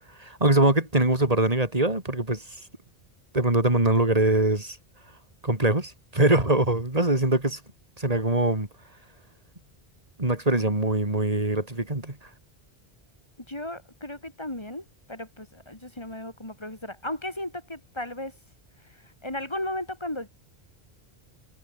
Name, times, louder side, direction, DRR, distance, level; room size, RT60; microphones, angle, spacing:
voice 1, 0.2-2.6 3.3-4.8 5.4-7.6 8.0-8.7 10.2-12.3, right 2 dB, 35° right, 3.6 m, -23 dB
voice 2, 13.5-18.4 18.8-20.3, left 1 dB, 25° left, 2.8 m, -35 dB
omnidirectional pair, 1.1 m